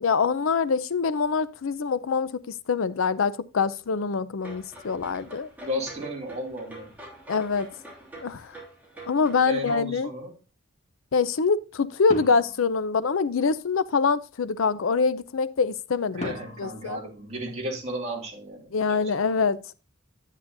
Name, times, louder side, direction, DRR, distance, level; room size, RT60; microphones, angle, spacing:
voice 1, 0.0-5.5 7.3-7.7 8.2-8.6 9.1-10.1 11.1-16.3 16.6-17.0 18.7-19.6, left 5 dB, 75° left, 0.5 m, -25 dB
sound 1, 4.4-9.7, right 1 dB, 10° right, 3.1 m, -45 dB
voice 2, 5.6-6.9 9.5-10.3 16.1-19.2, equal, 30° right, 2.4 m, -34 dB
sound 2, 12.1-13.6 16.2-18.0, equal, 35° left, 1.6 m, -41 dB
10.0 x 8.2 x 2.6 m
head